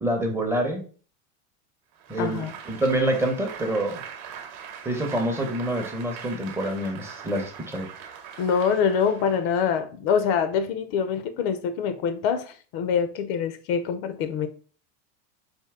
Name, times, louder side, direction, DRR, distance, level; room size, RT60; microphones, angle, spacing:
voice 1, 0.0-0.8 2.1-4.0 4.8-7.9, right 1 dB, 5° right, 0.7 m, -26 dB
Applause, 1.9-9.7, right 7 dB, 55° right, 0.9 m, -41 dB
voice 2, 2.2-2.5 8.4-14.5, left 7 dB, 55° left, 0.6 m, -25 dB
4.4 x 2.7 x 3.5 m
supercardioid pair, 140°, 35 cm